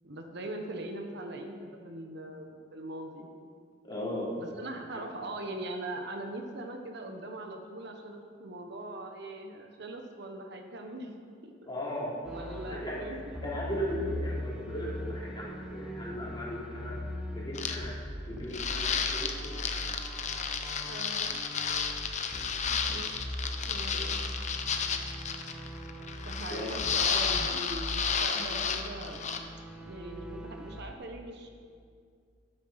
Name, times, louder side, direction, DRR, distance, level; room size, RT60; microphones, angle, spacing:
voice 1, 0.0-3.3 4.4-11.5 12.3-13.5 20.8-21.4 22.6-23.1 23.6-24.4 26.2-29.2 29.8-31.5, right 1 dB, 60° right, 4 dB, 1.1 m, -41 dB
voice 2, 3.8-4.3 4.9-5.0 11.7-12.1 12.4-13.0 13.4-17.0 17.3-17.9 18.2-20.0 26.5-26.9, equal, 25° left, -6 dB, 3.4 m, -37 dB
sound 1, 12.2-30.9, equal, 5° right, 1.0 m, -40 dB
sound 2, 17.5-17.8 18.5-29.4, left 6 dB, 40° left, 0.8 m, -32 dB
12.5 x 9.0 x 5.7 m, 2.2 s
head